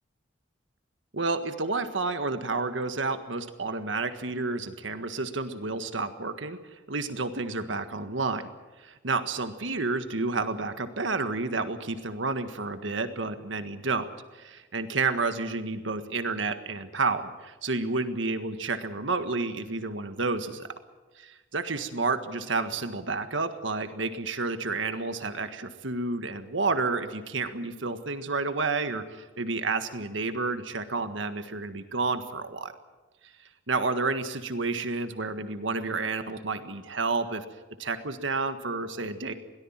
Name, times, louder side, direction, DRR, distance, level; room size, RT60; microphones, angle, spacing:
voice 1, 1.1-6.6 6.9-8.5 8.8-20.7 21.2-32.7 33.7-37.4 37.8-39.3, right 3 dB, 80° right, 9 dB, 1.6 m, -30 dB
22.5 x 18.0 x 7.4 m, 1.2 s
head